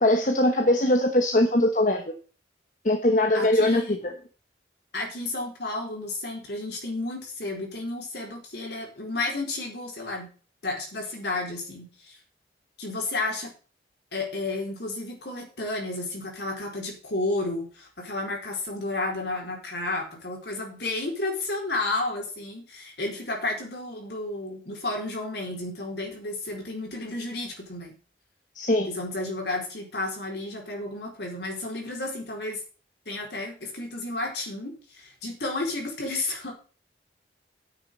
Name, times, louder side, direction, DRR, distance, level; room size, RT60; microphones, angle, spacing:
voice 1, 0.0-2.0 2.8-4.1 28.5-28.9, left 1 dB, 45° left, 5 dB, 1.2 m, -21 dB
voice 2, 3.3-4.0 4.9-10.3 10.6-12.2 12.8-13.5 14.1-28.0 28.9-32.6 33.1-36.5, left 2 dB, 65° left, 0 dB, 4.3 m, -32 dB
8.9 x 6.6 x 8.0 m, 0.38 s
head